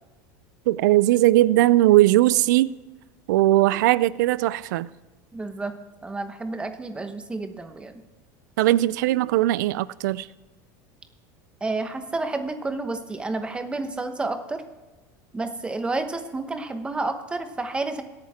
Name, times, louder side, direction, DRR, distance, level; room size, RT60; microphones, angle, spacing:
voice 1, 0.7-2.8 3.3-4.9 8.6-10.3, right 16 dB, 85° right, 0.4 m, -19 dB
voice 2, 5.3-5.7 6.0-8.0 11.6-14.6 15.3-18.0, right 3 dB, 10° right, 1.0 m, -30 dB
21.5 x 8.8 x 3.6 m
supercardioid pair, 145°, 10 cm